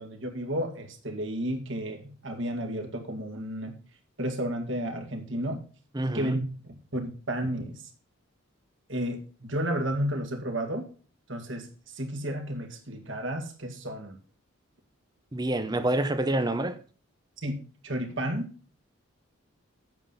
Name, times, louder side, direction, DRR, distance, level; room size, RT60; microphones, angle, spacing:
voice 1, 0.0-3.7 4.2-5.6 6.1-6.4 6.7-7.8 8.9-10.9 11.3-14.2 17.4-18.5, right 1 dB, 60° right, 2.3 m, -32 dB
voice 2, 5.9-6.4 15.3-16.8, right 1 dB, 20° right, 0.7 m, -27 dB
9.0 x 7.3 x 5.7 m
head